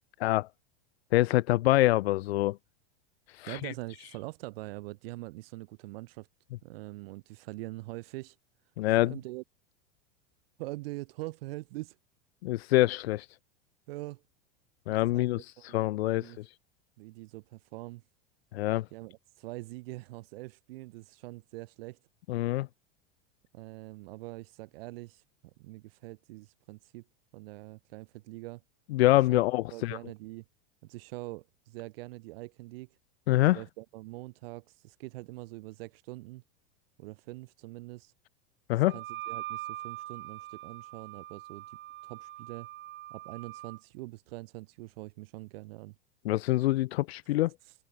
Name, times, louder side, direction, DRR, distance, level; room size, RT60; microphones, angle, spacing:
voice 1, 1.1-2.6 3.3-3.7 8.8-9.2 12.4-13.3 14.9-16.6 18.5-18.9 22.3-22.7 28.9-30.0 33.3-33.6 38.7-39.0 46.2-47.5, left 17 dB, 90° left, 0.5 m, -26 dB
voice 2, 3.5-6.3 6.6-8.4 8.9-9.4 10.6-12.0 13.9-14.2 14.9-16.4 17.0-18.0 18.9-22.0 23.5-27.0 27.3-28.6 29.2-29.4 29.7-30.4 30.8-32.9 33.5-36.4 37.0-38.1 38.9-41.8 42.0-42.7 43.1-46.0 47.6-47.7, right 21 dB, 70° right, 3.9 m, -43 dB
Wind instrument woodwind instrument, 38.8-43.8, right 15 dB, 40° right, 2.6 m, -42 dB
supercardioid pair, 130°, 31 cm